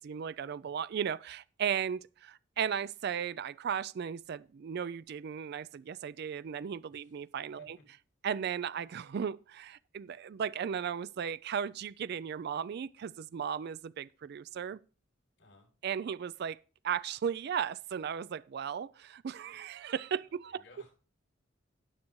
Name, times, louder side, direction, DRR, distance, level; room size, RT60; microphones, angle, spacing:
voice 1, 0.0-7.8 8.2-14.8 15.8-16.6 16.8-20.6, right 7 dB, 55° right, 0.4 m, -36 dB
voice 2, 7.6-8.0 15.4-15.7 20.2-20.9, left 2 dB, 65° left, 6.8 m, -60 dB
17.5 x 6.4 x 3.0 m
head